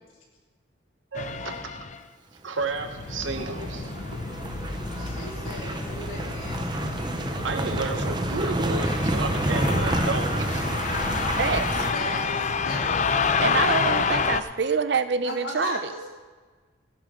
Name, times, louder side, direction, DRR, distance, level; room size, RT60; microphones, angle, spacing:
sound 1, 1.1-2.0 2.7-14.4, left 5 dB, 35° left, 0.5 m, -29 dB
voice 1, 1.1-1.7 2.4-3.9 7.4-11.2, right 3 dB, 75° right, 5 dB, 1.3 m, -32 dB
sound 2, 2.6-11.9, right 1 dB, 20° right, 0.7 m, -29 dB
voice 2, 5.0-7.4 11.5-14.0 15.2-16.1, left 1 dB, 85° left, -3 dB, 3.8 m, -38 dB
voice 3, 13.4-15.9, right 5 dB, 55° right, 11 dB, 0.6 m, -26 dB
16.5 x 11.0 x 3.8 m, 1.4 s
head